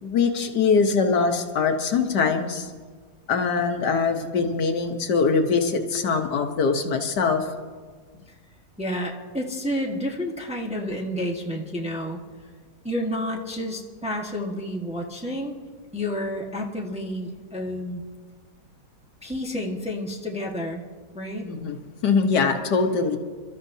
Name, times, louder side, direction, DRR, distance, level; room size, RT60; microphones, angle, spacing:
voice 1, 0.0-2.7 3.3-7.5 21.4-21.8 22.0-23.2, left 5 dB, 70° left, 5 dB, 1.5 m, -22 dB
voice 2, 8.8-12.2 12.8-15.6 15.9-18.0 19.2-20.8 21.1-21.5, equal, 5° right, -1 dB, 1.1 m, -30 dB
29.0 x 13.0 x 2.7 m, 1.5 s
omnidirectional pair, 1.9 m